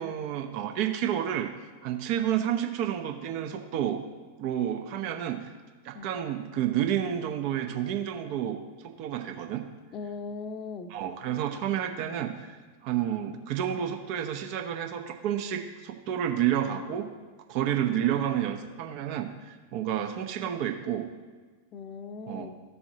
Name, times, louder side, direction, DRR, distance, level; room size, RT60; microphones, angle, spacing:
voice 1, 0.0-1.5 1.8-4.0 4.4-5.4 5.8-9.7 10.9-12.5 12.8-17.1 17.5-21.1 22.3-22.5, right 10 dB, 45° right, 6 dB, 0.9 m, -30 dB
voice 2, 9.9-10.9 17.7-17.8 21.7-22.5, left 4 dB, 35° left, 8 dB, 0.8 m, -39 dB
13.5 x 6.9 x 2.9 m, 1.4 s
figure-of-eight pair, 90°, 0 cm